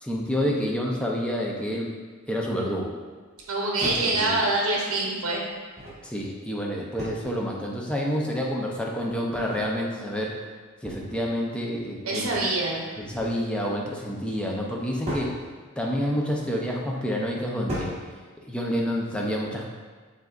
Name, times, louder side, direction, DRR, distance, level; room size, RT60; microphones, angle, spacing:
voice 1, 0.0-1.9 2.3-2.9 3.8-4.4 6.0-10.3 10.8-12.3 13.0-15.3 15.8-17.9 18.4-19.6, equal, 5° left, -1 dB, 0.4 m, -28 dB
sound 1, 3.4-3.5 3.8-4.1 5.5-6.1 7.0-7.4 9.1-9.6 10.8-11.3 12.8-13.4 15.0-15.3 16.4-16.7 17.7-18.1, right 1 dB, 30° right, 1.4 m, -36 dB
voice 2, 3.5-5.4 12.0-12.8, right 2 dB, 70° right, -2 dB, 0.9 m, -25 dB
6.4 x 3.4 x 2.4 m, 1.5 s
head